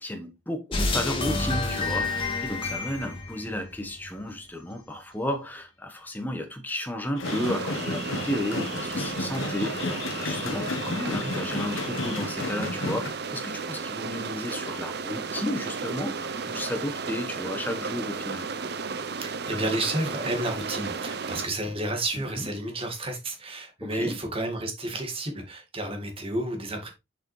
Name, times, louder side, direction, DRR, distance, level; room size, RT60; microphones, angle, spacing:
voice 1, 0.0-18.5 22.3-22.5 23.8-24.2, left 1 dB, 10° left, 1.2 m, -33 dB
sound 1, 0.7-4.1, left 3 dB, 25° left, 1.8 m, -29 dB
sound 2, 7.2-13.1, left 2 dB, 75° left, 1.1 m, -32 dB
sound 3, 7.2-21.5, right 5 dB, 55° right, 0.6 m, -34 dB
voice 2, 19.2-26.9, right 1 dB, 30° right, 1.9 m, -31 dB
6.8 x 5.8 x 3.2 m
head